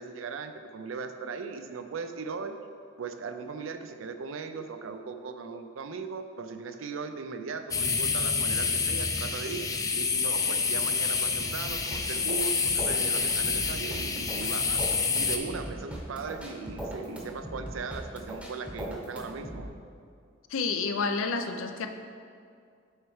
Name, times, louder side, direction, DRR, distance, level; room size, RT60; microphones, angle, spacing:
voice 1, 0.0-2.6 3.0-9.7 9.9-14.9 15.1-19.7, right 5 dB, 85° right, 8 dB, 0.5 m, -38 dB
sound 1, 7.7-15.4, left 5 dB, 15° left, 0.4 m, -28 dB
sound 2, 11.7-19.7, equal, 5° right, 0.8 m, -40 dB
voice 2, 20.5-21.9, left 4 dB, 90° left, 7 dB, 0.5 m, -29 dB
6.5 x 4.5 x 4.8 m, 2.3 s
head